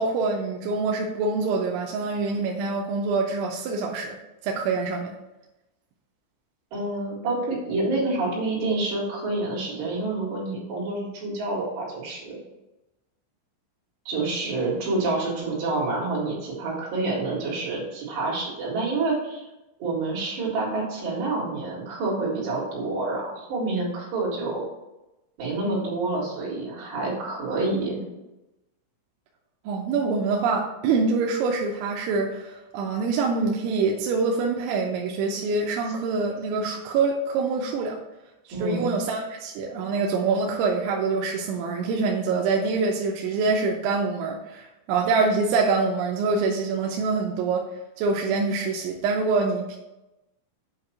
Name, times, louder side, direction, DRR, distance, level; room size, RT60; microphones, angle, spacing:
voice 1, 0.0-4.2 4.4-5.2 29.7-38.0 38.6-47.7 48.0-49.8, right 4 dB, 80° right, 0 dB, 2.7 m, -25 dB
voice 2, 6.7-12.4 14.1-19.4 19.8-24.7 25.4-28.0 38.5-38.9, right 2 dB, 60° right, -5 dB, 3.9 m, -28 dB
8.1 x 2.9 x 5.8 m, 0.97 s
omnidirectional pair, 6.0 m